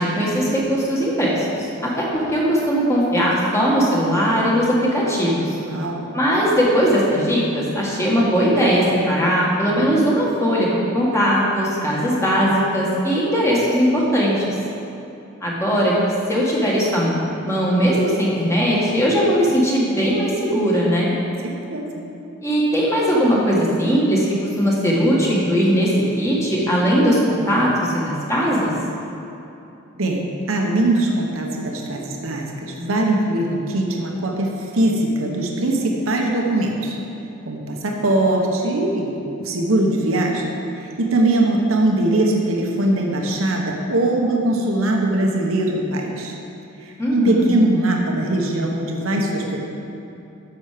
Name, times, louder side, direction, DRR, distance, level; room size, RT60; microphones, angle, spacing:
voice 1, 0.0-5.6 6.1-10.7 10.9-14.4 15.4-15.9 16.3-17.2 17.5-21.1 22.4-25.9 26.2-28.7 47.0-47.4, equal, 15° left, -5 dB, 1.8 m, -19 dB
voice 2, 5.5-6.1 21.4-21.9 30.0-37.0 37.5-40.5 40.7-46.3 46.8-49.6, right 1 dB, 75° right, 0 dB, 1.1 m, -21 dB
10.5 x 7.1 x 5.1 m, 2.8 s
head